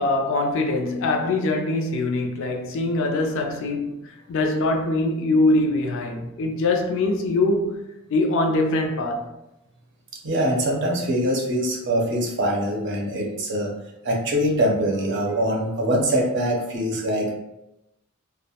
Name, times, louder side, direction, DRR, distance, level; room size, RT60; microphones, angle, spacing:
voice 1, 0.0-4.0 4.3-7.8 8.1-9.3, left 2 dB, 60° left, 0.4 m, -23 dB
voice 2, 10.2-13.7 14.0-17.3, equal, 55° right, 0.6 m, -23 dB
2.3 x 2.0 x 2.7 m
head